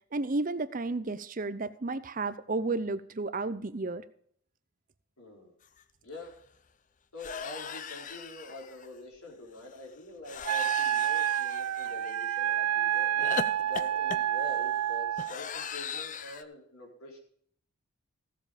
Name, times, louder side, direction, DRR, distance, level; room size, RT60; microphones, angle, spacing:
voice 1, 0.1-4.0, right 3 dB, 35° right, 13 dB, 0.6 m, -32 dB
voice 2, 5.2-5.5 6.0-6.3 7.1-13.2 13.6-17.2, left 2 dB, 75° left, 0 dB, 4.3 m, -45 dB
sound 1, 5.8-5.9 6.1-6.4 7.2-8.9 10.3-12.4 13.2-16.4, left 6 dB, 35° left, 0.6 m, -39 dB
Wind instrument woodwind instrument, 10.5-15.3, right 11 dB, 90° right, 0.4 m, -29 dB
16.0 x 7.4 x 5.0 m, 0.63 s
head